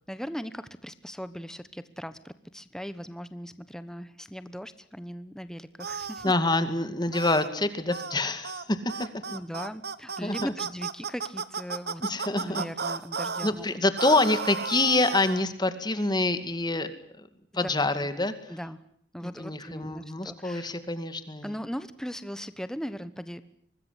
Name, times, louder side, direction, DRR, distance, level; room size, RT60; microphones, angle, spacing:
voice 1, 0.1-6.2 9.3-12.0 12.4-13.7 17.5-17.9 18.5-18.8 19.1-20.7 21.4-23.5, equal, 5° left, 12 dB, 1.1 m, -39 dB
sound 1, 5.8-6.3 7.1-7.5 7.9-8.2 8.4-8.6 8.9-13.5 14.0-15.4, right 5 dB, 60° right, 1.4 m, -34 dB
voice 2, 6.2-9.2 10.2-10.5 12.0-12.7 13.4-17.3 17.5-18.5 19.2-21.5, left 2 dB, 25° left, 11 dB, 2.3 m, -27 dB
24.5 x 20.5 x 10.0 m, 0.66 s
head